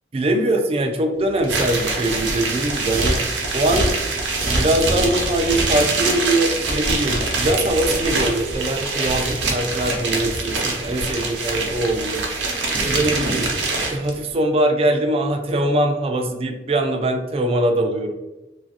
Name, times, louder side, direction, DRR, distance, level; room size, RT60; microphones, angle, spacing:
voice 1, 0.1-3.3 3.5-12.2 12.8-13.5 13.9-18.1, right 1 dB, 35° right, 4 dB, 0.3 m, -22 dB
sound 1, 1.4-14.1, right 3 dB, 90° right, 0.6 m, -24 dB
2.9 x 2.4 x 2.7 m, 1.0 s
head